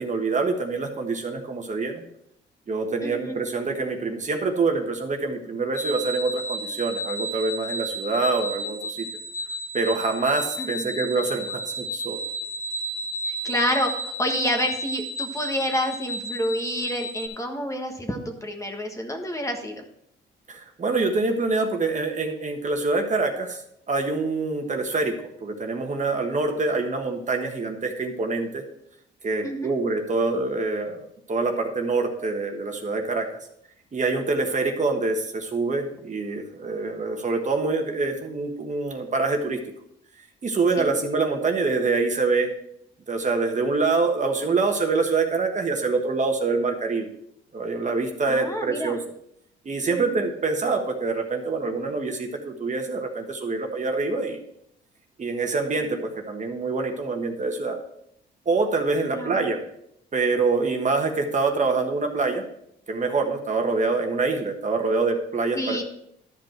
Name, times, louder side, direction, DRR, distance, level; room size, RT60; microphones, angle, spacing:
voice 1, 0.0-2.0 2.7-9.1 9.7-12.2 20.5-23.6 23.9-28.6 29.2-33.3 33.9-39.6 40.4-42.5 43.1-47.1 47.5-49.0 49.6-54.4 55.2-57.8 58.4-59.6 60.1-62.4 62.9-65.8, right 3 dB, 40° right, 4 dB, 1.4 m, -25 dB
voice 2, 3.0-3.4 10.6-10.9 13.2-19.8 29.4-29.7 40.8-40.9 48.3-49.0 49.9-50.2 59.1-59.4 65.5-65.8, equal, 15° left, 3 dB, 1.5 m, -28 dB
sound 1, 5.7-17.3, right 1 dB, 15° right, 1.8 m, -33 dB
12.0 x 5.3 x 4.5 m, 0.73 s
cardioid pair, 90°, 20 cm